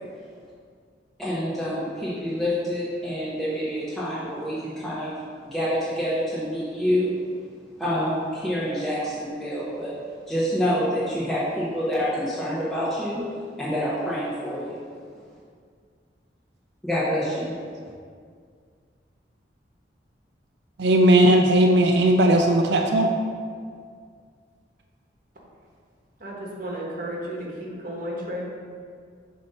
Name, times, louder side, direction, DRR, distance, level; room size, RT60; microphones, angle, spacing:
voice 1, 1.2-5.1 5.5-7.1 7.8-9.9 10.3-13.2 13.6-14.8 16.8-17.5, equal, ahead, -12 dB, 1.0 m, -27 dB
voice 2, 20.8-23.1, right 1 dB, 70° right, 2 dB, 0.5 m, -17 dB
voice 3, 26.2-28.4, equal, 50° right, -3 dB, 1.2 m, -33 dB
7.4 x 2.8 x 5.4 m, 2.1 s
head